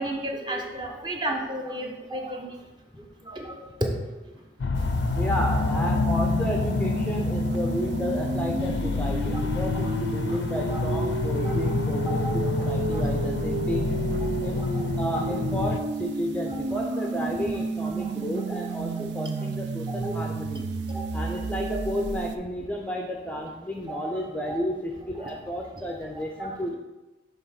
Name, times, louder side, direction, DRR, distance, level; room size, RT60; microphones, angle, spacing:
voice 1, 0.0-2.5 3.3-3.9 7.7-7.8 8.7-9.0 10.3-10.4 10.7-10.8 11.4-11.5 12.0-12.3 12.9-13.1 14.5-14.7 17.2-17.4 18.5-18.6 19.0-19.1 20.0-20.2 20.9-21.1 21.7-21.8 23.9-24.1 24.5-24.6 25.2-25.3 26.4-26.5, right 1 dB, 25° right, 1 dB, 0.8 m, -33 dB
sound 1, 4.6-15.8, left 3 dB, 70° left, 0.4 m, -27 dB
sound 2, 4.7-22.4, right 4 dB, 70° right, 0.5 m, -32 dB
voice 2, 5.0-13.9 14.4-14.7 15.0-20.7 21.1-26.8, equal, 5° left, 1 dB, 0.4 m, -32 dB
7.0 x 3.4 x 5.7 m, 1.1 s
head